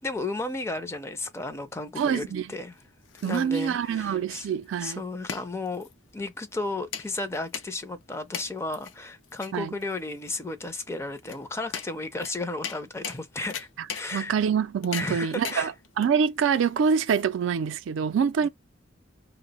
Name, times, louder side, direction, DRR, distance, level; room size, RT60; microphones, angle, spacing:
voice 1, 0.0-2.8 3.2-4.5 4.8-14.3 14.9-15.7, left 2 dB, 15° left, 0.4 m, -34 dB
voice 2, 2.0-2.5 3.2-5.0 9.5-9.7 14.1-18.5, right 7 dB, 85° right, 0.3 m, -25 dB
sound 1, 2.7-17.6, left 7 dB, 85° left, 0.5 m, -41 dB
2.6 x 2.1 x 3.9 m
head